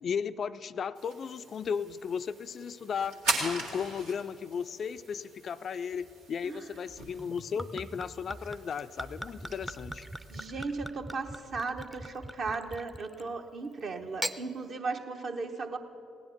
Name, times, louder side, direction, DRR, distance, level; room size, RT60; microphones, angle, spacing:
voice 1, 0.0-10.0, left 6 dB, 50° left, 12 dB, 0.3 m, -35 dB
sound 1, 1.0-10.5, right 2 dB, 80° right, 1.9 m, -40 dB
Gurgling / Chink clink / Liquid, 7.2-13.3 14.0-14.4, right 1 dB, 10° right, 0.5 m, -41 dB
voice 2, 10.3-15.8, right 4 dB, 50° right, 5 dB, 1.0 m, -36 dB
16.0 x 10.0 x 5.9 m, 2.9 s
figure-of-eight pair, 45°, 0 cm